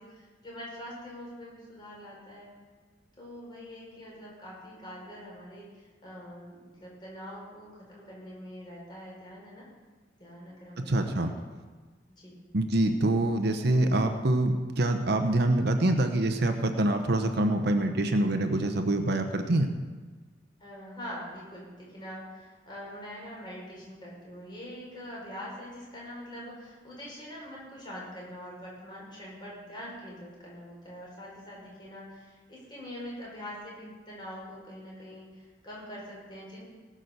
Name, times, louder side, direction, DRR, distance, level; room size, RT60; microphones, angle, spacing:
voice 1, 0.0-2.5 3.2-9.6 10.2-11.3 12.2-12.4 20.6-36.6, equal, 25° left, -5 dB, 5.2 m, -44 dB
voice 2, 10.9-11.3 12.5-19.7, right 1 dB, 60° right, 6 dB, 0.9 m, -25 dB
19.0 x 6.3 x 6.8 m, 1.4 s
head